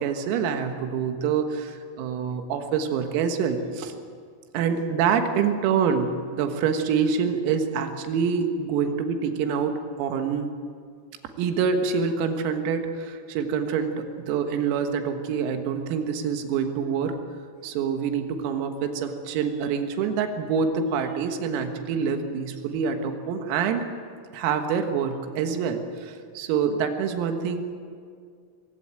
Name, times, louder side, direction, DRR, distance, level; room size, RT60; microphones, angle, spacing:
voice 1, 0.0-3.9 4.5-10.5 11.4-17.1 17.6-23.8 24.3-27.8, right 6 dB, 85° right, 6 dB, 4.2 m, -26 dB
22.0 x 16.0 x 9.0 m, 2.2 s
omnidirectional pair, 6.0 m